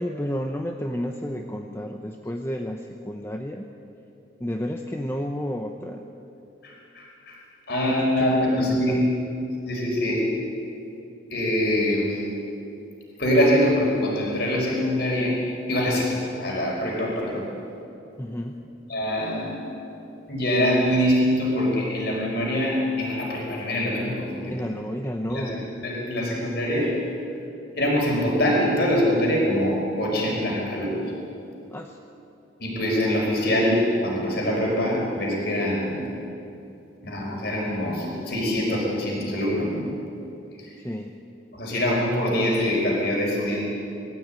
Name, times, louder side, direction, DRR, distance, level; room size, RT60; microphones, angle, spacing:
voice 1, 0.0-3.7 4.4-6.1 7.9-9.0 18.2-18.6 24.4-25.6 31.7-32.0 40.8-41.2, equal, 10° left, 3 dB, 0.8 m, -31 dB
voice 2, 6.6-7.4 7.7-9.0 9.6-10.2 11.3-12.3 13.2-15.4 15.7-17.5 18.9-19.5 20.3-24.5 25.3-26.9 27.8-31.0 32.6-36.1 37.0-39.8 41.5-43.6, equal, 55° left, -2 dB, 5.0 m, -24 dB
21.5 x 14.5 x 9.0 m, 2.9 s
head